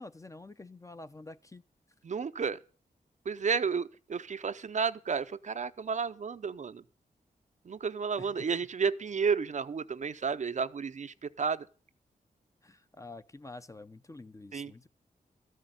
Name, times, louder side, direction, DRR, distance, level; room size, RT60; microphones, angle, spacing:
voice 1, 0.0-1.6 8.2-8.3 12.6-14.9, left 2 dB, 20° left, 0.6 m, -48 dB
voice 2, 2.0-2.6 3.3-6.8 7.7-11.7 14.5-14.7, right 5 dB, 50° right, 0.5 m, -32 dB
13.5 x 6.4 x 9.0 m
wide cardioid pair, 110°, 16 cm